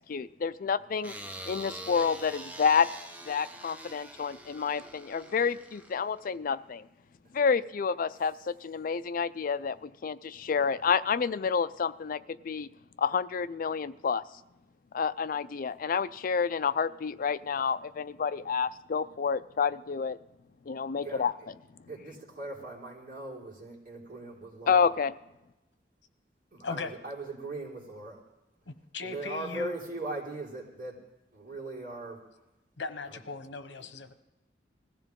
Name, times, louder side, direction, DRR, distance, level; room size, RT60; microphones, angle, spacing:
voice 1, 0.1-1.1 1.5-2.9 3.3-6.9 7.3-12.7 13.0-14.2 14.9-20.2 20.7-21.3 24.7-25.1, left 6 dB, 50° left, 13 dB, 0.4 m, -29 dB
sound 1, 1.0-6.3, right 1 dB, 10° right, 0.9 m, -44 dB
voice 2, 21.0-21.5 21.8-24.9 26.5-28.2 29.0-31.0 31.3-32.2 33.1-33.2 33.8-33.9, right 2 dB, 50° right, -6 dB, 4.7 m, -40 dB
voice 3, 28.7-29.7 32.8-34.1, left 4 dB, 80° left, 9 dB, 1.1 m, -38 dB
20.5 x 15.0 x 3.7 m, 0.96 s
head